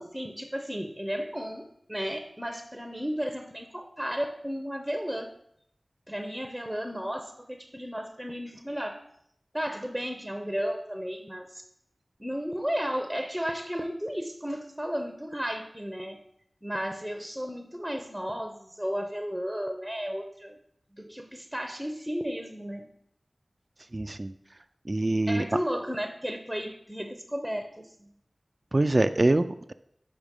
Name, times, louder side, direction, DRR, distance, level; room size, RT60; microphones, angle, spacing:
voice 1, 0.0-5.3 6.1-9.0 9.5-11.6 12.2-16.2 16.6-20.6 20.9-22.8 25.3-28.1, equal, ahead, 6 dB, 0.7 m, -34 dB
voice 2, 23.9-24.3 24.9-25.5 28.7-29.7, right 2 dB, 45° right, 10 dB, 0.3 m, -24 dB
6.1 x 4.9 x 5.2 m, 0.73 s
wide cardioid pair, 55°, 0 cm